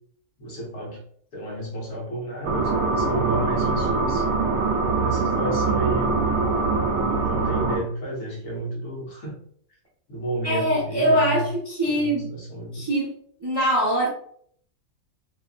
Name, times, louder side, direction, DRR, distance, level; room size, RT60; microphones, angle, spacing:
voice 1, 0.4-1.0 1.3-4.3 5.0-6.3 7.2-9.3 10.1-11.5 11.9-12.9, right 1 dB, 60° left, -2 dB, 1.0 m, -31 dB
sound 1, 2.4-7.8, right 4 dB, 65° right, 0.8 m, -23 dB
voice 2, 10.4-12.3 12.7-13.1 13.4-14.1, equal, 30° right, -6 dB, 0.5 m, -22 dB
2.8 x 2.3 x 2.3 m, 0.62 s
omnidirectional pair, 1.4 m